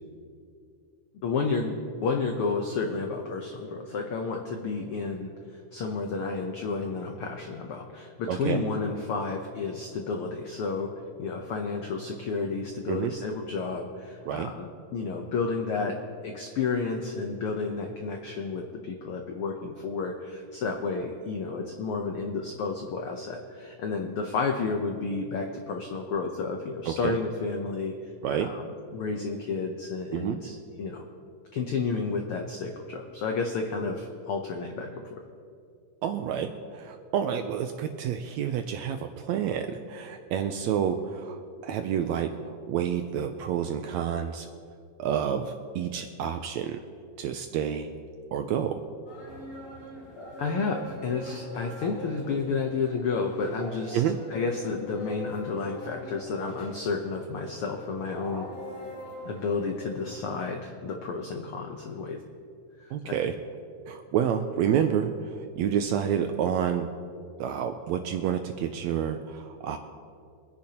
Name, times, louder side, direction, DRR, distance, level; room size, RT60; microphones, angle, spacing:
voice 1, 1.2-10.9 11.2-16.0 16.2-27.9 28.3-31.0 31.5-35.2 50.4-54.0 54.3-58.5 59.2-62.2 62.8-63.2, left 4 dB, 90° left, 3 dB, 1.2 m, -31 dB
voice 2, 8.3-8.6 12.9-13.1 14.3-14.5 26.8-27.2 28.2-28.5 30.1-30.4 36.0-44.5 45.0-46.8 47.2-47.9 48.3-48.8 53.9-54.2 62.9-63.3 63.9-66.9 67.4-69.8, right 9 dB, 80° right, 6 dB, 1.6 m, -29 dB
sound 1, 49.1-60.2, left 1 dB, 25° left, 3.2 m, -42 dB
25.0 x 10.5 x 2.9 m, 2.3 s
omnidirectional pair, 3.7 m